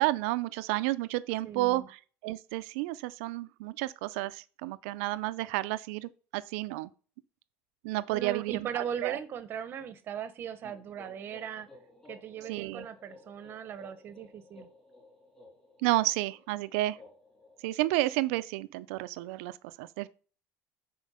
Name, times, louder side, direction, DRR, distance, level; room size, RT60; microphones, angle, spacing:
voice 1, 0.0-2.0 2.2-6.9 7.8-9.2 12.5-12.9 15.8-17.0 17.6-20.1, right 18 dB, 85° right, 0.4 m, -31 dB
voice 2, 1.4-1.9 8.1-11.7 12.1-14.7, right 8 dB, 30° right, 0.8 m, -38 dB
sound 1, 10.6-18.3, left 2 dB, 10° left, 2.7 m, -55 dB
9.9 x 4.4 x 5.5 m
cardioid pair, 170°, 7 cm